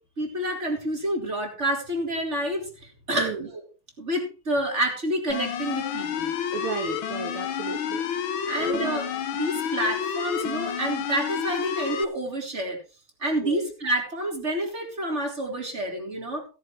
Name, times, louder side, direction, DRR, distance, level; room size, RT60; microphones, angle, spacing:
voice 1, 0.2-3.7 4.0-6.3 8.5-9.1 9.3-12.8 13.2-16.5, right 1 dB, 30° right, 2 dB, 4.0 m, -28 dB
sound 1, 5.3-12.0, left 8 dB, 75° left, 1.8 m, -30 dB
voice 2, 6.5-8.0 8.6-8.9 13.4-13.6, right 6 dB, 80° right, 5 dB, 2.2 m, -33 dB
17.0 x 11.0 x 3.2 m, 0.33 s
omnidirectional pair, 2.3 m